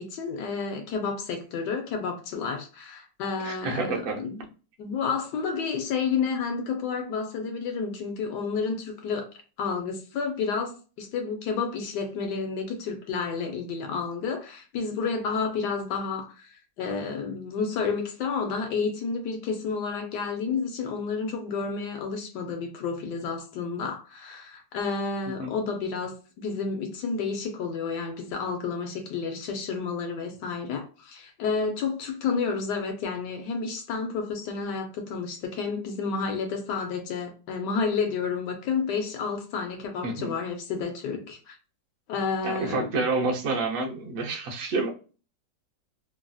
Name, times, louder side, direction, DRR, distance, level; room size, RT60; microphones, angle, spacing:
voice 1, 0.0-4.4 4.8-9.3 9.6-41.6 42.1-42.9, left 5 dB, 75° left, 1.2 m, -30 dB
voice 2, 3.4-4.2 25.4-25.5 40.0-40.3 42.4-44.9, right 3 dB, 60° right, 1.0 m, -28 dB
3.2 x 2.5 x 2.2 m
omnidirectional pair, 1.9 m